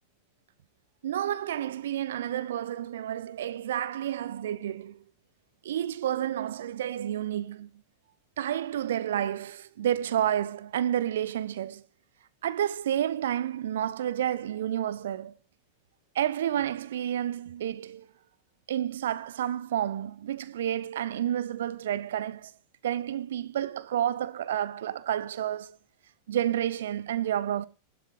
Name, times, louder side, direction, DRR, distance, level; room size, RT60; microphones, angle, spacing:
voice 1, 1.0-5.0 5.6-7.7 8.4-11.8 12.4-15.3 16.1-18.1 18.7-22.5 22.8-25.8 26.3-27.7, right 11 dB, 60° right, 1.0 m, -30 dB
20.0 x 12.5 x 3.7 m
figure-of-eight pair, 90°, 0 cm